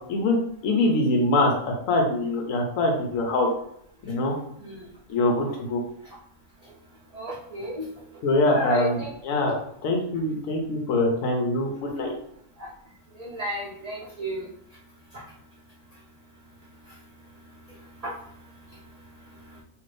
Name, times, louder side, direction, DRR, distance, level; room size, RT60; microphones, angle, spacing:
voice 1, 0.6-3.5 4.0-4.4 5.1-5.8 8.2-12.1, left 2 dB, 85° left, 1 dB, 1.0 m, -24 dB
voice 2, 7.1-7.9 8.5-9.1 12.6-12.7 13.1-14.5 18.0-18.1, right 1 dB, 45° right, -6 dB, 0.5 m, -32 dB
2.7 x 2.5 x 3.2 m, 0.69 s
omnidirectional pair, 1.4 m